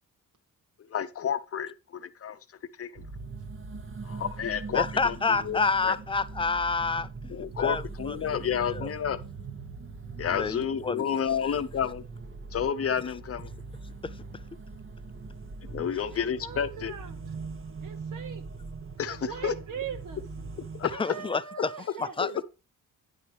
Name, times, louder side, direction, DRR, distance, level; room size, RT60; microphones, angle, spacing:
voice 1, 0.9-2.4 2.8-3.0 4.0-5.2 5.4-6.0 7.3-9.2 10.2-12.0 12.5-13.5 15.6-16.9 19.0-19.5 20.6-20.9 22.2-22.3, left 8 dB, 45° left, 0.7 m, -30 dB
sound 1, 3.0-21.0, right 4 dB, 40° right, 1.0 m, -41 dB
voice 2, 4.7-7.8 8.1-8.4 8.7-8.9 10.3-11.1 14.0-14.1 20.9-21.7 22.0-22.4, left 4 dB, 15° left, 0.3 m, -29 dB
voice 3, 16.1-17.1 17.8-18.4 19.1-20.2 20.9-22.3, right 7 dB, 60° right, 1.0 m, -40 dB
9.7 x 5.3 x 4.6 m
cardioid pair, 125°, 34 cm